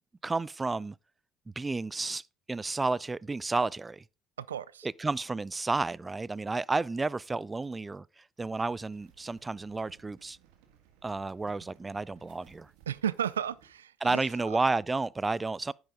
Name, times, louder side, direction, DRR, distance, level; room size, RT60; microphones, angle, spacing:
voice 1, 0.2-1.0 1.6-4.0 4.8-10.4 11.0-12.7 14.0-15.7, right 3 dB, 20° right, 0.4 m, -31 dB
voice 2, 4.4-4.9 12.9-14.6, right 9 dB, 90° right, 0.4 m, -34 dB
sound 1, 8.4-13.7, right 9 dB, 70° right, 1.6 m, -61 dB
10.0 x 7.9 x 3.7 m
hypercardioid pair, 65°, 0 cm